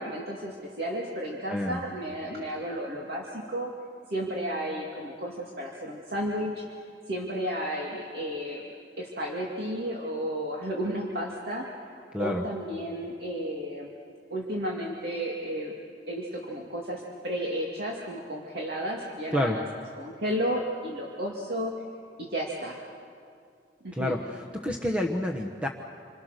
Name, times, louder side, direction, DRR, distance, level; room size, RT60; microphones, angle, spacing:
voice 1, 0.0-3.7 4.1-6.6 7.1-8.6 9.0-11.7 12.2-13.9 14.3-15.7 16.1-19.6 20.0-21.7 22.2-22.8 23.8-24.1, equal, 60° right, -2 dB, 2.5 m, -32 dB
voice 2, 1.5-1.8 12.1-12.4 19.3-19.6 23.9-25.7, left 1 dB, 5° right, 2 dB, 1.1 m, -29 dB
28.5 x 26.0 x 6.6 m, 2.4 s
head